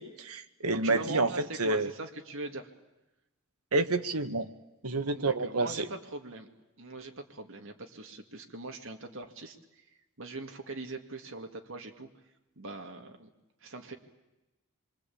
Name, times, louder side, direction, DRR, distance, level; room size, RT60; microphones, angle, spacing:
voice 1, 0.0-1.9 3.7-4.5 4.8-5.9, right 3 dB, 85° right, 10 dB, 1.5 m, -29 dB
voice 2, 0.8-2.7 5.1-6.5 6.8-9.9 10.2-12.1 12.6-13.3 13.6-13.9, right 2 dB, 60° right, 4 dB, 2.3 m, -41 dB
27.5 x 24.0 x 8.7 m, 1.0 s
head